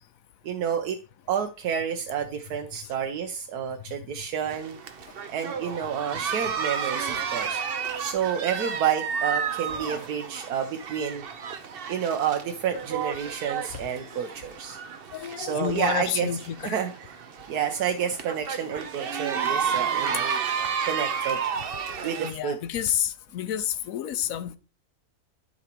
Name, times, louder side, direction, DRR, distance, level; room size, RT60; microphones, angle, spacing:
voice 1, 0.4-1.0 1.3-4.8 5.3-7.6 8.0-11.2 11.9-14.8 15.4-16.3 16.6-16.9 17.5-20.3 20.8-21.4 22.0-22.6, right 8 dB, 90° right, 1.3 m, -29 dB
sound 1, 4.5-22.3, right 7 dB, 50° right, 0.8 m, -32 dB
voice 2, 15.1-16.8 22.2-24.6, left 10 dB, 70° left, 1.0 m, -29 dB
12.5 x 5.3 x 2.9 m
omnidirectional pair, 1.6 m